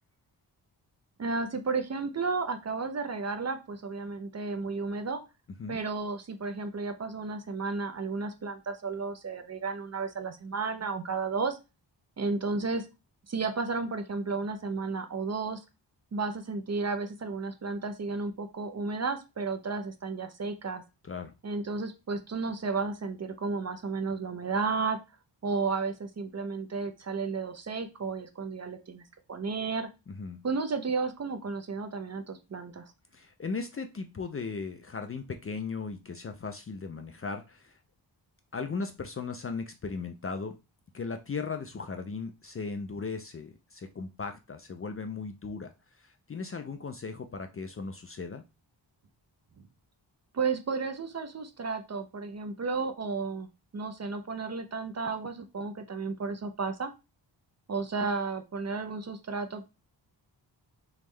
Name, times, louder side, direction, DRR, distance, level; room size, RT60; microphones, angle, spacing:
voice 1, 1.2-5.2 5.7-11.6 12.2-12.9 13.3-15.6 16.1-20.8 21.4-25.0 25.4-29.9 30.4-32.9 50.3-53.5 53.7-56.9 57.7-59.7, right 4 dB, 35° right, 8 dB, 0.5 m, -33 dB
voice 2, 30.1-30.5 33.1-37.8 38.5-40.6 40.9-48.4, left 4 dB, 35° left, 6 dB, 0.4 m, -37 dB
3.6 x 3.0 x 3.1 m, 0.27 s
wide cardioid pair, 115°, 44 cm